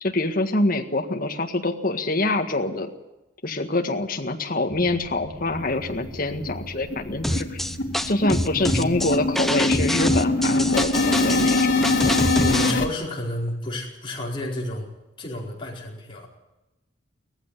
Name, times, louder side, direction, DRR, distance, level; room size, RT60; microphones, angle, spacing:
voice 1, 0.0-2.9 3.4-7.6 8.1-11.7 12.0-12.2, left 2 dB, 45° left, 4 dB, 1.7 m, -25 dB
sound 1, 4.7-10.8, equal, 25° right, 4.9 m, -42 dB
sound 2, 5.6-5.7 6.0-6.1 6.5-6.7 6.9-12.9, left 2 dB, 65° left, 2.8 m, -23 dB
sound 3, 7.2-12.7, equal, ahead, 0.6 m, -26 dB
voice 2, 8.5-9.0 12.4-14.9 15.2-16.3, left 1 dB, 25° left, -3 dB, 4.7 m, -31 dB
18.0 x 15.0 x 9.9 m, 1.0 s
head